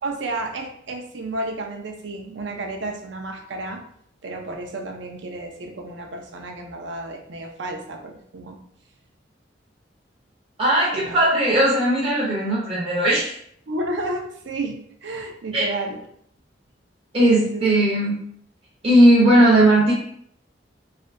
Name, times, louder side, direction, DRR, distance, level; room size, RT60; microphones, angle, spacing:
voice 1, 0.0-3.8 4.2-8.6 10.9-11.2 13.7-16.0 17.3-17.7, right 2 dB, 70° right, 3 dB, 0.5 m, -31 dB
voice 2, 10.6-13.3 15.5-15.6 17.1-18.1 18.8-19.9, right 1 dB, 30° right, -6 dB, 0.6 m, -17 dB
3.3 x 2.6 x 2.5 m, 0.68 s
head